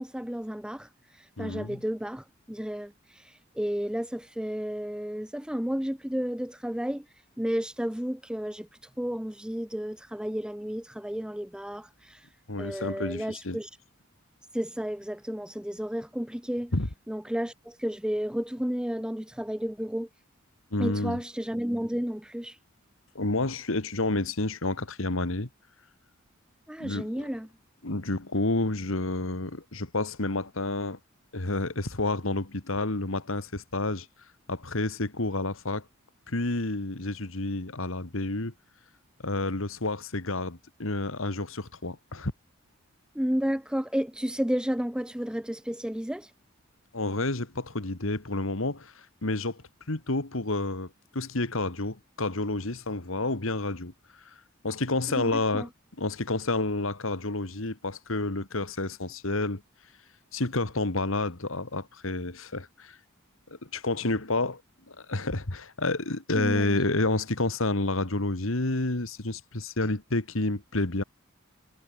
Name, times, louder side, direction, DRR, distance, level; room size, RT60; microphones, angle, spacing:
voice 1, 0.0-7.0 7.4-8.7 9.0-12.3 12.6-13.7 14.5-16.7 17.1-20.1 20.8-22.6 26.7-27.5 43.1-46.3 55.1-55.7 66.3-66.8, equal, 5° right, 0.8 m, -32 dB
voice 2, 1.4-1.8 12.5-13.6 16.7-16.9 20.7-21.2 23.1-25.5 26.8-27.3 27.8-31.0 31.3-34.1 34.5-35.9 36.3-38.5 39.2-42.3 46.9-49.6 49.9-53.9 54.6-55.7 56.0-59.6 60.3-63.0 63.6-64.6 64.9-71.0, left 2 dB, 70° left, 2.2 m, -29 dB
head